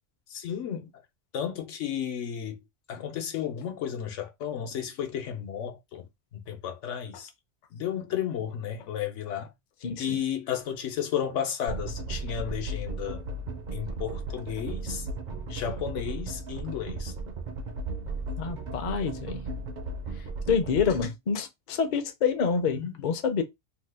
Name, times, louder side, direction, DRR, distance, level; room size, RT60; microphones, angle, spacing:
voice 1, 0.3-0.9 1.3-2.6 2.9-6.1 6.3-7.3 7.7-9.5 10.0-13.2 13.7-15.1 15.5-17.1 22.7-23.2, left 9 dB, 80° left, 1.1 m, -33 dB
voice 2, 9.8-10.2 18.4-19.4 20.2-23.4, left 6 dB, 50° left, 0.6 m, -28 dB
sound 1, 11.7-21.1, right 3 dB, 50° right, 0.6 m, -35 dB
2.8 x 2.2 x 3.3 m
omnidirectional pair, 1.2 m